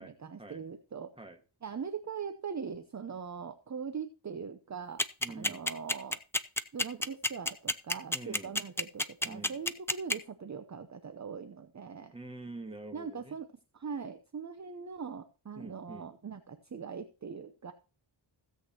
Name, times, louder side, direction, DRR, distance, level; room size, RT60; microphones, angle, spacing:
voice 1, 0.0-1.1 1.6-6.2 6.7-12.2 12.9-13.5 13.7-17.7, right 6 dB, 35° right, 10 dB, 0.8 m, -41 dB
sound 1, 5.0-10.1, left 1 dB, 5° left, 0.5 m, -28 dB
voice 2, 5.2-5.7 8.1-8.6 9.2-9.6 12.1-13.4 15.5-16.1, right 2 dB, 10° right, 5 dB, 1.6 m, -46 dB
16.5 x 8.0 x 2.9 m, 0.35 s
wide cardioid pair, 110°, 48 cm